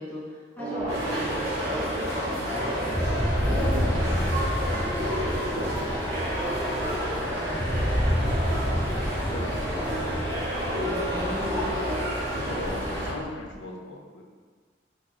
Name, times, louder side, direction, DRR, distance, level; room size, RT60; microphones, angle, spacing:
voice 1, 0.0-1.9 2.3-6.9 7.2-9.5 10.8-11.9 12.4-12.8, equal, 10° left, -8 dB, 0.6 m, -39 dB
Gong, 0.6-6.5 6.7-6.8, right 3 dB, 40° right, 0.4 m, -39 dB
sound 1, 0.8-2.6 2.9-13.6, equal, 15° right, 0.9 m, -30 dB
sound 2, 0.9-13.1, equal, 80° right, 1.2 m, -29 dB
voice 2, 9.1-10.2 10.8-11.1 12.2-14.2, left 2 dB, 85° left, 1 dB, 0.5 m, -39 dB
4.4 x 2.3 x 2.8 m, 1.5 s
head